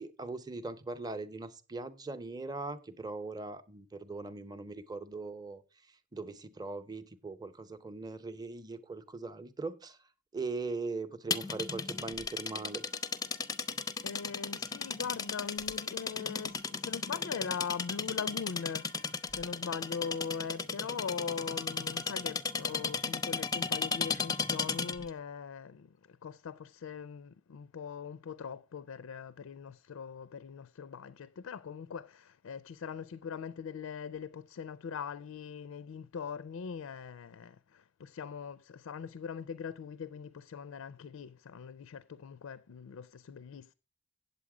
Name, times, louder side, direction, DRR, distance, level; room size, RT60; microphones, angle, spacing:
voice 1, 0.0-5.6 5.9-10.0 10.3-12.8, right 3 dB, 20° right, 0.7 m, -40 dB
sound 1, 11.3-25.1, left 5 dB, 20° left, 0.5 m, -35 dB
voice 2, 14.0-43.7, left 6 dB, 80° left, 0.4 m, -41 dB
8.3 x 8.1 x 4.8 m
head